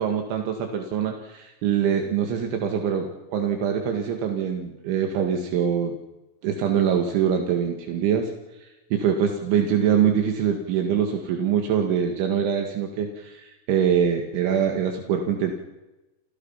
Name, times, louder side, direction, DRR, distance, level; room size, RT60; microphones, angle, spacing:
voice 1, 0.0-6.0 6.4-8.3 8.6-15.5, right 8 dB, 75° right, 4 dB, 4.3 m, -24 dB
29.5 x 28.5 x 5.8 m, 1.0 s
omnidirectional pair, 5.6 m